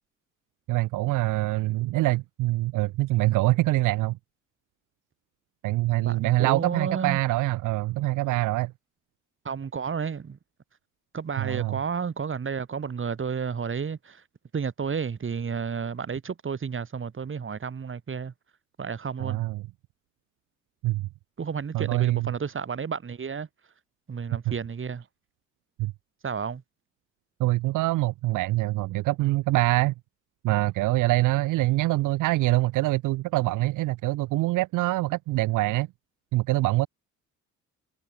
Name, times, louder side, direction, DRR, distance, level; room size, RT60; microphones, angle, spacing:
voice 1, 0.7-4.2 5.6-8.7 11.4-11.8 19.2-19.6 20.8-21.1 21.7-22.3 25.8-25.9 27.4-29.9 30.4-35.9 36.3-36.9, right 18 dB, 90° right, 0.8 m, -24 dB
voice 2, 6.0-7.2 9.4-10.4 11.1-14.2 14.5-18.3 18.8-19.5 21.4-23.5 24.1-25.0 26.2-26.6, right 6 dB, 40° right, 7.5 m, -31 dB
cardioid pair, 90°, 30 cm